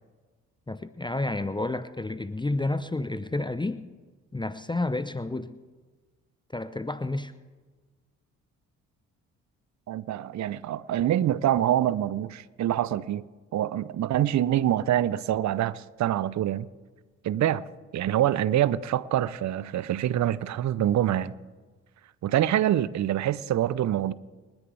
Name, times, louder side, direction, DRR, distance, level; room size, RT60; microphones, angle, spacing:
voice 1, 0.7-3.8 4.3-5.5 6.5-7.3, left 2 dB, 10° left, 0.8 m, -30 dB
voice 2, 9.9-13.2 13.5-16.7 17.2-17.6 17.9-21.3 22.2-24.1, right 12 dB, 50° right, 0.7 m, -25 dB
28.5 x 10.5 x 3.4 m
hypercardioid pair, 45°, 37 cm